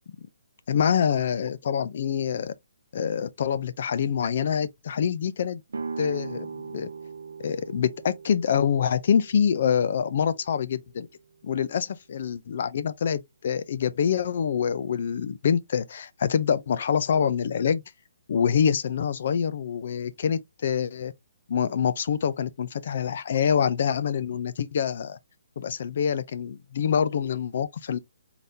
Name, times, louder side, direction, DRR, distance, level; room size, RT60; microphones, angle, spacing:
voice 1, 0.7-2.5 2.9-5.6 6.0-6.9 7.4-11.1 11.4-17.8 18.3-21.1 21.5-25.2 25.6-28.0, left 7 dB, 45° left, 0.4 m, -26 dB
sound 1, 5.7-11.5, right 5 dB, 85° right, 0.7 m, -40 dB
4.0 x 3.5 x 2.7 m
hypercardioid pair, 170°, 0 cm